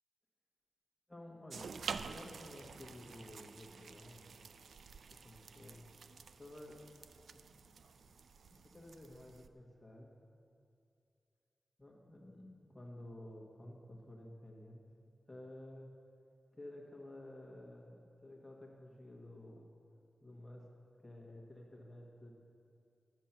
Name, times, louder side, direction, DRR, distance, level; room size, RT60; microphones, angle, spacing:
voice 1, 1.1-1.7 2.1-4.3 5.2-5.8 6.4-6.9 7.3-10.2 11.8-14.8 15.3-15.9 16.5-19.7 20.2-20.7 21.0-22.3, left 1 dB, 10° left, -1 dB, 1.5 m, -53 dB
sound 1, 1.5-9.5, right 5 dB, 80° right, 0.4 m, -49 dB
12.0 x 8.3 x 6.0 m, 2.4 s
wide cardioid pair, 130°, 0 cm